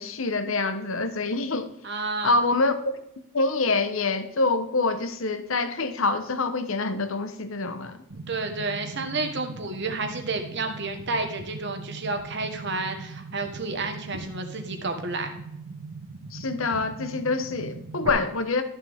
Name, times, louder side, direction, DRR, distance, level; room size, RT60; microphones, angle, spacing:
voice 1, 0.0-1.7 2.2-3.0 3.3-8.0 16.3-18.6, left 3 dB, 70° left, 1.0 m, -26 dB
voice 2, 1.8-2.4 8.3-15.3, right 3 dB, 55° right, 1.4 m, -30 dB
sound 1, 8.1-18.1, right 4 dB, 80° right, 1.0 m, -40 dB
13.0 x 6.8 x 3.5 m
head